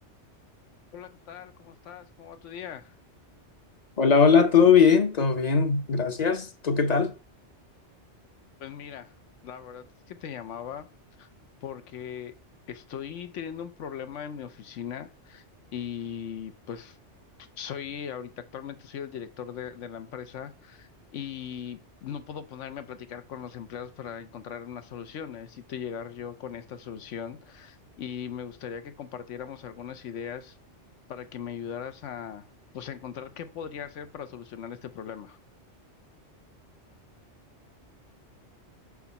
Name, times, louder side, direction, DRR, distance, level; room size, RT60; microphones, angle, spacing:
voice 1, 0.9-2.9 8.6-9.1 9.4-10.9 11.2-11.3 11.6-12.3 12.7-15.4 15.7-17.0 17.6-30.6 31.1-32.5 32.7-35.4, left 8 dB, 90° left, 1.1 m, -39 dB
voice 2, 4.0-7.1, left 6 dB, 45° left, 0.7 m, -20 dB
4.9 x 4.0 x 5.4 m
omnidirectional pair, 1.2 m